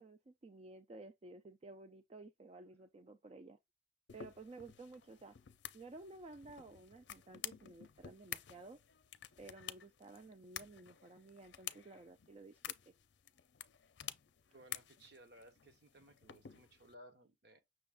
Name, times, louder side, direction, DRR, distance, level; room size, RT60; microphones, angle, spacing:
voice 1, 0.0-3.6 4.1-5.4 5.7-8.8 9.4-12.9, right 3 dB, 35° right, 0.3 m, -54 dB
sound 1, 4.1-16.9, left 11 dB, 75° left, 0.5 m, -51 dB
voice 2, 14.5-17.6, right 1 dB, 65° right, 1.1 m, -60 dB
6.1 x 2.4 x 3.5 m
head